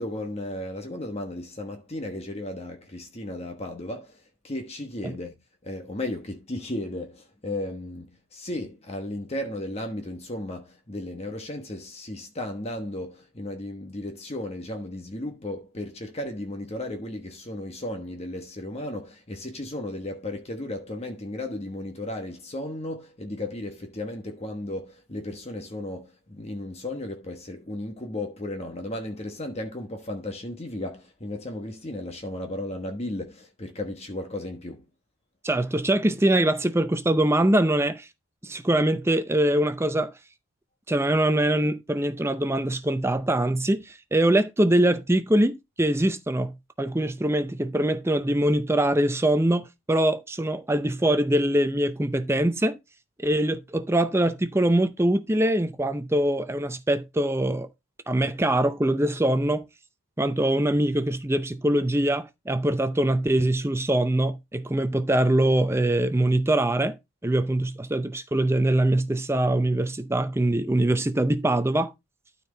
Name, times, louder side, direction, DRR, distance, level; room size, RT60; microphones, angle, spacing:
voice 1, 0.0-5.3 5.6-34.9, left 1 dB, 30° left, 1.2 m, -35 dB
voice 2, 35.4-38.1 38.4-40.1 40.9-52.8 53.2-57.7 58.1-59.6 60.2-67.0 67.2-71.9, right 1 dB, 10° right, 0.5 m, -23 dB
12.5 x 4.5 x 3.8 m
head